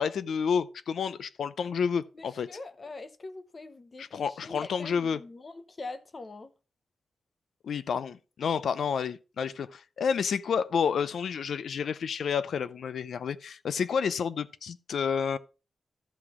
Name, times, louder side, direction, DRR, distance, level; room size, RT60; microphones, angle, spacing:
voice 1, 0.0-2.5 4.0-5.2 7.6-15.4, left 6 dB, 75° left, 0.5 m, -30 dB
voice 2, 2.1-6.5, left 3 dB, 35° left, 0.8 m, -43 dB
13.0 x 6.0 x 3.0 m
wide cardioid pair, 160°, 0 cm